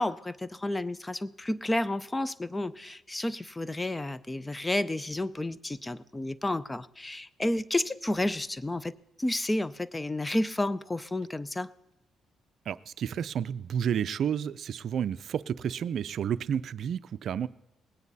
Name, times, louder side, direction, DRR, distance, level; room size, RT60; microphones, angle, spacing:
voice 1, 0.0-8.9 9.2-11.7, left 1 dB, 15° left, 18 dB, 0.5 m, -31 dB
voice 2, 12.7-17.5, right 8 dB, 65° right, 16 dB, 0.4 m, -31 dB
19.5 x 9.5 x 4.1 m, 0.96 s
cardioid pair, 90°, 0 cm